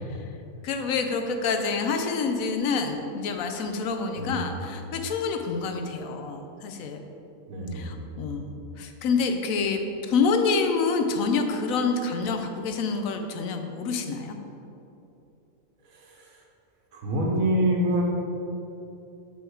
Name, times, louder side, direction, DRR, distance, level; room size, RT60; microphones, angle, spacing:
voice 1, 0.6-7.0 7.7-9.8 10.1-14.4, left 4 dB, 80° left, 5 dB, 1.0 m, -27 dB
voice 2, 7.5-7.9 16.9-18.0, right 1 dB, 85° right, -1 dB, 1.4 m, -25 dB
7.1 x 3.5 x 4.6 m, 2.9 s
omnidirectional pair, 1.4 m